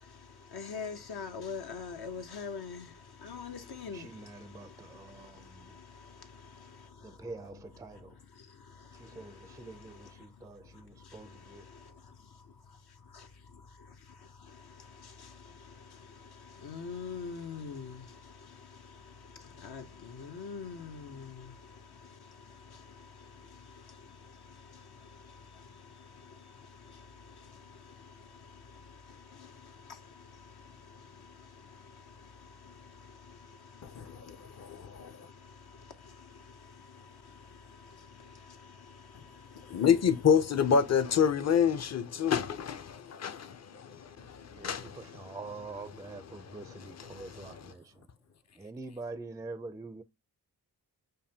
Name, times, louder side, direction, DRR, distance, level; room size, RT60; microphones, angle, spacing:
voice 1, 0.0-39.9, left 5 dB, 70° left, 0.9 m, -47 dB
voice 2, 3.9-5.7 7.0-8.1 9.0-11.6 44.5-47.8 48.6-50.0, right 3 dB, 10° right, 0.4 m, -45 dB
voice 3, 33.8-35.3 39.7-45.4 45.9-47.7, left 7 dB, 40° left, 0.6 m, -29 dB
5.2 x 2.2 x 2.7 m
cardioid pair, 45°, 40 cm